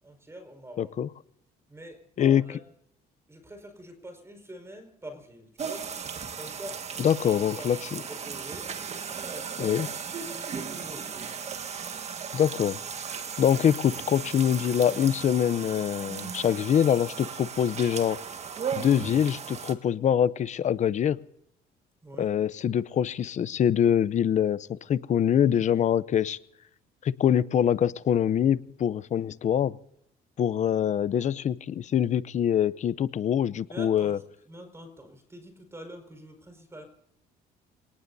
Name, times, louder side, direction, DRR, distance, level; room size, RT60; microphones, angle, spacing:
voice 1, 0.0-0.9 1.7-2.6 3.3-5.9 6.3-7.7 7.9-8.7 9.2-9.8 10.2-11.3 22.0-22.3 33.7-34.2 34.5-36.8, right 1 dB, 15° right, 7 dB, 5.1 m, -45 dB
voice 2, 0.8-1.1 2.2-2.4 7.0-8.0 9.6-9.9 12.3-12.8 13.4-18.2 18.7-21.2 22.2-26.4 27.0-29.8 30.4-34.2, left 9 dB, 45° left, 18 dB, 0.7 m, -24 dB
sound 1, 5.6-19.7, right 6 dB, 40° right, 1.7 m, -36 dB
28.5 x 18.5 x 2.7 m, 0.74 s
cardioid pair, 110°, 17 cm